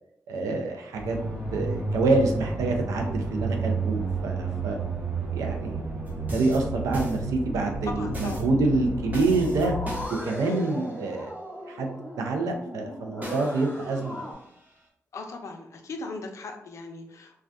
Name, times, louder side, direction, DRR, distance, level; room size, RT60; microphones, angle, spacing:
voice 1, 0.3-1.2 1.5-4.8 5.3-5.8 6.2-9.7 10.2-11.3 11.7-14.2, right 3 dB, 85° right, 3 dB, 0.4 m, -26 dB
sound 1, 1.0-10.1, right 3 dB, 60° right, 1.2 m, -31 dB
sound 2, 6.1-7.6 8.1-8.5 9.1-11.0 13.2-14.8, equal, 30° right, 0.8 m, -40 dB
voice 2, 7.8-8.4 10.4-10.7 15.1-17.4, left 3 dB, 65° left, 4 dB, 0.4 m, -38 dB
sound 3, 8.0-14.3, left 1 dB, 10° left, 0.5 m, -39 dB
2.2 x 2.2 x 2.5 m, 0.76 s
cardioid pair, 55°, 6 cm